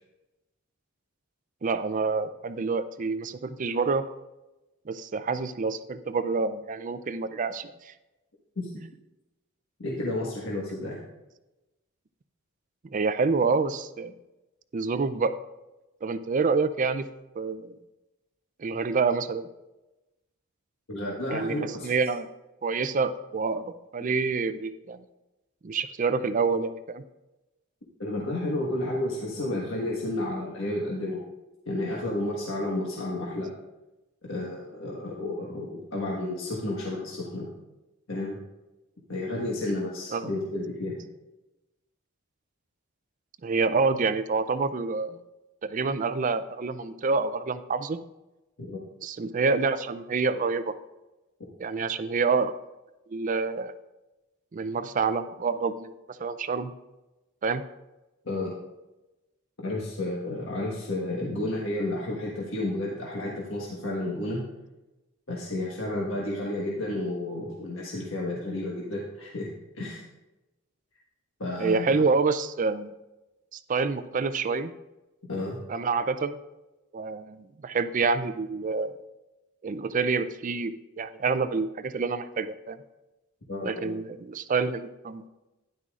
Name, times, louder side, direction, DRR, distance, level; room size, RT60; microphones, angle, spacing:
voice 1, 1.6-4.0 4.9-7.9 8.8-8.9 12.8-14.1 14.7-15.3 16.0-17.1 17.4-17.8 18.6-19.5 21.3-22.3 22.6-25.0 25.6-27.0 40.1-40.3 43.4-45.2 45.6-48.0 49.0-50.7 51.6-52.5 53.1-53.7 54.5-55.9 56.2-56.7 57.4-57.6 71.6-72.9 73.5-74.7 75.7-76.4 76.9-79.0 79.6-82.8 83.6-85.3, right 4 dB, 40° right, 12 dB, 0.4 m, -27 dB
voice 2, 9.8-11.0 20.9-22.0 28.0-31.2 31.7-33.5 34.2-37.5 38.1-38.4 39.1-40.9 48.6-48.8 58.2-58.5 59.6-64.4 65.3-69.5 69.7-70.0 71.4-72.0 75.3-75.6 83.5-83.9, left 1 dB, 70° left, -4 dB, 1.5 m, -31 dB
12.5 x 10.5 x 2.5 m, 1.0 s
head